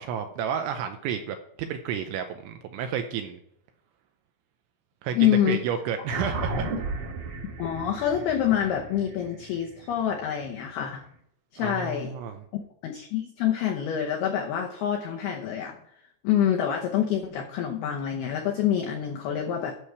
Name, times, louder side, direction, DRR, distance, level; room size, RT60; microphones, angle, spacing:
voice 1, 0.0-3.4 5.0-6.7 11.6-12.4, right 8 dB, 85° right, 6 dB, 2.7 m, -31 dB
voice 2, 5.1-5.6 7.6-11.0 11.5-12.1 12.5-15.8 16.2-19.7, left 10 dB, 90° left, 2 dB, 2.2 m, -26 dB
sound 1, 6.1-10.8, right 2 dB, 60° right, 2.5 m, -34 dB
11.5 x 6.7 x 4.6 m, 0.72 s
omnidirectional pair, 5.9 m